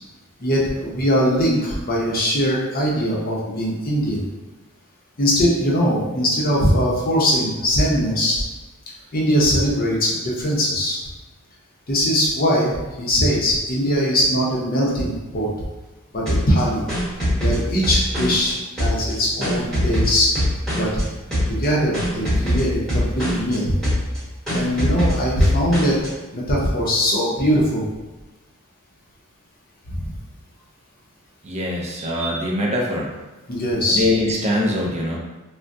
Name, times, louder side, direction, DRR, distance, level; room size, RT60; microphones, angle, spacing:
voice 1, 0.4-4.2 5.2-8.4 9.1-11.0 11.9-15.5 16.1-16.9 17.4-20.3 20.7-21.0 21.5-23.7 24.5-26.0 26.3-27.8 29.9-30.1 33.5-34.1, equal, 45° left, -4 dB, 0.7 m, -21 dB
sound 1, 16.3-18.5 18.8-21.0 21.3-21.7 21.9-23.6 23.8-24.2 24.5-26.1, equal, ahead, 1.1 m, -22 dB
voice 2, 31.4-33.1 33.9-35.2, left 1 dB, 30° right, -3 dB, 0.4 m, -22 dB
3.4 x 2.1 x 2.6 m, 1.1 s
head